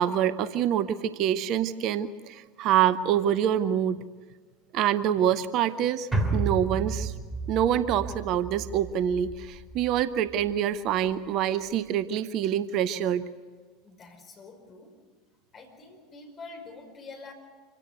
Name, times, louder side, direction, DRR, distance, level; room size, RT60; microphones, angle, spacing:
voice 1, 0.0-4.0 4.7-7.1 7.5-13.3, right 10 dB, 45° right, 15 dB, 0.7 m, -26 dB
sound 1, 6.1-10.6 10.9-11.0, right 3 dB, 10° right, 3.0 m, -32 dB
voice 2, 13.8-14.9 15.5-17.3, left 3 dB, 30° left, 3 dB, 5.2 m, -46 dB
25.5 x 17.0 x 8.3 m, 1.5 s
figure-of-eight pair, 80°, 0 cm